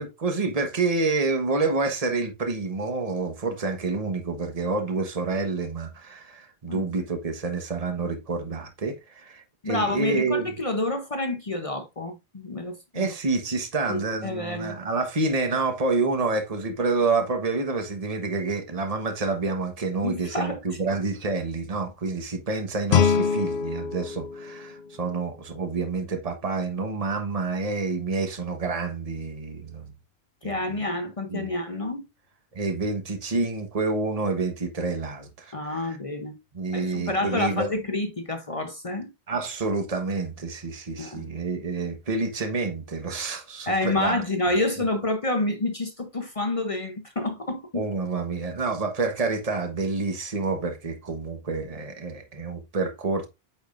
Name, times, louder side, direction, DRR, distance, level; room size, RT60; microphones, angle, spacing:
voice 1, 0.0-10.5 12.9-29.9 30.4-30.8 31.3-31.5 32.5-36.0 36.5-37.7 39.3-44.2 47.7-53.3, right 3 dB, 40° right, 1.3 m, -28 dB
voice 2, 9.6-13.1 13.9-14.7 20.0-21.0 30.4-32.1 35.5-36.4 36.7-39.1 41.0-41.3 43.7-47.8, left 2 dB, 35° left, 0.9 m, -28 dB
Guitar, 22.9-25.7, left 7 dB, 60° left, 0.7 m, -25 dB
8.7 x 5.2 x 2.5 m
omnidirectional pair, 1.0 m